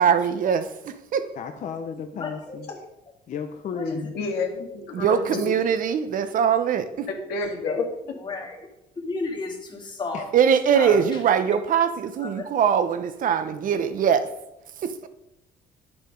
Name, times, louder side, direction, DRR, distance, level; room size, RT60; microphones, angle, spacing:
voice 1, 0.0-1.3 4.9-7.1 10.3-14.3 14.8-15.1, right 7 dB, 55° right, 11 dB, 0.9 m, -22 dB
voice 2, 1.4-2.7 3.3-4.1 10.1-10.3, left 6 dB, 45° left, 5 dB, 0.9 m, -33 dB
voice 3, 2.2-2.8 3.7-4.0 5.1-5.5 7.7-7.8 8.2-8.7 9.0-10.2 10.7-11.0 12.2-12.5, left 3 dB, 25° left, 1 dB, 2.3 m, -33 dB
voice 4, 4.1-5.4 7.1-7.8, left 3 dB, 75° left, 1 dB, 2.1 m, -29 dB
8.9 x 7.2 x 5.3 m, 0.87 s
cardioid pair, 110°, 17 cm